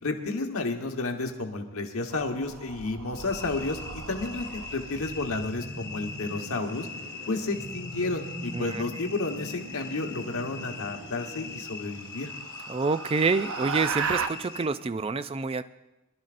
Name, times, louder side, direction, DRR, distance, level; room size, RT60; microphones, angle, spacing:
voice 1, 0.0-3.8 4.1-6.9 7.3-12.3, left 3 dB, 75° left, 3 dB, 1.2 m, -31 dB
sound 1, 2.1-5.6 7.9-8.4 10.5-10.6 11.1-11.2 11.7-14.3, right 5 dB, 70° right, 0.6 m, -36 dB
sound 2, 3.1-14.7, left 4 dB, 15° left, 1.2 m, -42 dB
sound 3, 4.3-12.4, equal, 85° right, 5.5 m, -43 dB
voice 2, 12.7-15.6, right 4 dB, 25° right, 13 dB, 0.3 m, -27 dB
23.0 x 12.0 x 2.5 m, 0.98 s
head